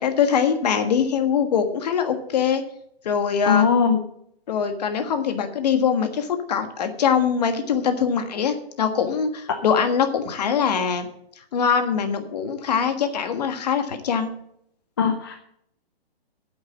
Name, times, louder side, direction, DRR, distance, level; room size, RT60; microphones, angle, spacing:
voice 1, 0.0-2.6 3.0-3.7 4.5-11.1 11.5-14.3, left 7 dB, 40° left, 8 dB, 1.5 m, -23 dB
voice 2, 3.5-4.0 15.0-15.4, left 6 dB, 25° left, 5 dB, 0.6 m, -19 dB
9.3 x 7.9 x 7.2 m, 0.71 s
hypercardioid pair, 170°, 31 cm